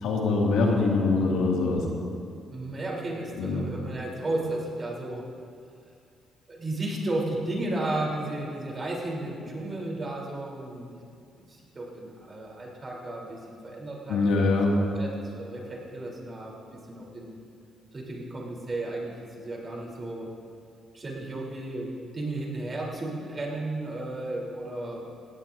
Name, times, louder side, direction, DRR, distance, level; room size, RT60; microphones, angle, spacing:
voice 1, 0.0-1.8 3.4-3.7 14.1-14.8, left 3 dB, 85° left, -2 dB, 2.3 m, -23 dB
voice 2, 2.5-5.3 6.5-10.9 11.5-16.6 16.9-17.3 17.9-20.3 20.9-21.9 22.1-25.1, right 2 dB, 35° right, -2 dB, 3.7 m, -34 dB
18.0 x 16.5 x 2.7 m, 2.4 s
cardioid pair, 90°, 0 cm